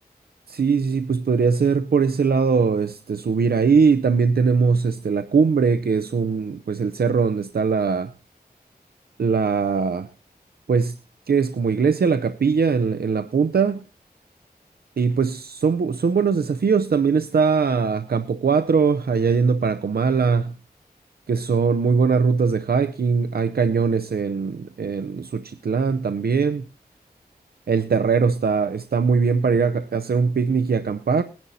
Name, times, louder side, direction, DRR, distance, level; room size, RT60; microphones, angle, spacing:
voice 1, 0.5-8.1 9.2-10.1 10.7-11.0 11.3-13.8 15.0-20.5 21.3-26.6 27.7-31.2, right 5 dB, 70° right, 0.6 m, -21 dB
20.5 x 10.5 x 2.7 m
wide cardioid pair, 75°, 17 cm